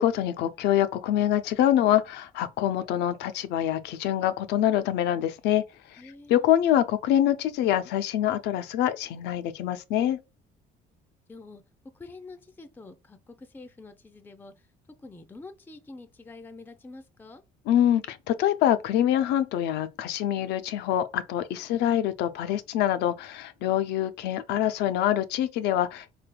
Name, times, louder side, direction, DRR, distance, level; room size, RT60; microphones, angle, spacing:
voice 1, 0.0-5.6 6.3-10.2 17.7-26.1, left 11 dB, 80° left, 0.5 m, -25 dB
voice 2, 6.0-6.4 11.3-11.6 11.9-14.5 15.0-17.4, left 3 dB, 10° left, 0.4 m, -46 dB
4.0 x 3.3 x 2.2 m
cardioid pair, 110°, 17 cm